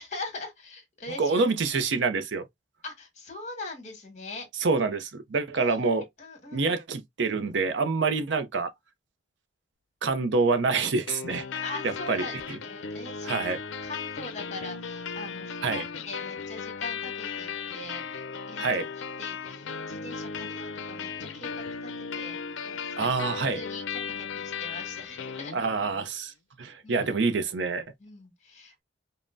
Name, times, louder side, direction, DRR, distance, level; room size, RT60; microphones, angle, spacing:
voice 1, 0.0-1.5 2.8-4.5 5.5-6.8 11.6-22.4 22.6-23.2 23.5-25.5 26.8-27.1 28.0-28.8, left 2 dB, 40° left, 1.7 m, -42 dB
voice 2, 1.2-2.4 4.6-6.0 6.5-8.7 10.0-12.6 13.2-13.6 15.6-15.8 18.6-18.8 23.0-23.6 25.5-27.9, right 4 dB, 70° right, 0.6 m, -27 dB
sound 1, 11.1-26.0, left 6 dB, 85° left, 0.5 m, -36 dB
5.2 x 2.1 x 2.5 m
head